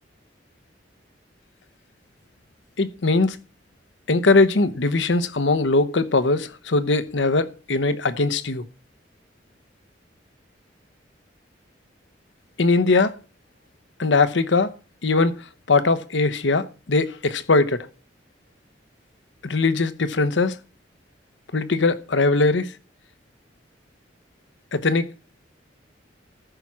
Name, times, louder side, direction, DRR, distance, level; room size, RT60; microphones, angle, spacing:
voice 1, 2.8-3.4 4.1-8.6 12.6-13.1 14.0-14.7 15.0-15.4 15.7-17.9 19.4-20.6 21.5-22.7 24.7-25.1, left 3 dB, 80° left, 0.9 m, -20 dB
14.0 x 5.9 x 6.1 m
head